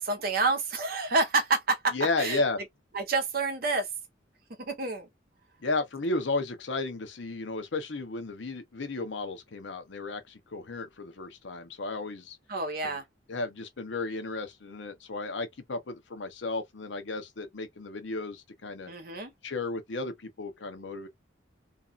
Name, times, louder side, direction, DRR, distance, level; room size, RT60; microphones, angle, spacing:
voice 1, 0.0-2.4 2.9-3.9 4.6-5.1 12.5-13.0 18.9-19.3, right 3 dB, 50° right, 0.8 m, -28 dB
voice 2, 1.9-2.6 5.6-12.4 13.3-18.9 19.4-21.1, left 3 dB, 75° left, 0.8 m, -33 dB
2.6 x 2.4 x 2.4 m
head